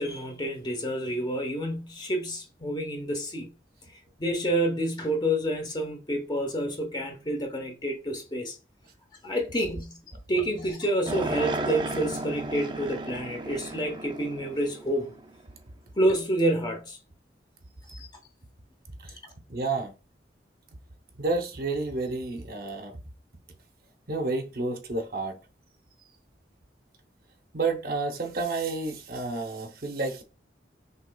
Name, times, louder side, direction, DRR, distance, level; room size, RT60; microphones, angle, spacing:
voice 1, 0.0-3.5 4.2-8.6 9.2-10.0 10.3-15.1 16.0-17.0 17.9-18.1, right 1 dB, 25° left, 0.9 m, -28 dB
sound 1, 11.1-15.4, right 2 dB, 25° right, 0.5 m, -34 dB
voice 2, 19.5-19.9 21.2-23.0 24.1-25.4 27.5-30.2, right 3 dB, 55° right, 0.8 m, -30 dB
6.1 x 3.0 x 2.3 m
head